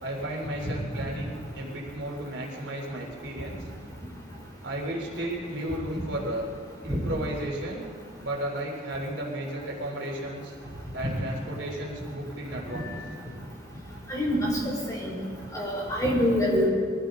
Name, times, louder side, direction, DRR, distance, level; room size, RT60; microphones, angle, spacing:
voice 1, 0.0-3.6 4.6-6.5 6.8-7.9 8.2-10.5 10.9-12.9, right 1 dB, 75° right, -2 dB, 3.4 m, -33 dB
voice 2, 14.1-15.1 15.5-16.7, equal, 20° left, -4 dB, 4.5 m, -25 dB
22.5 x 15.0 x 3.8 m, 2.1 s
head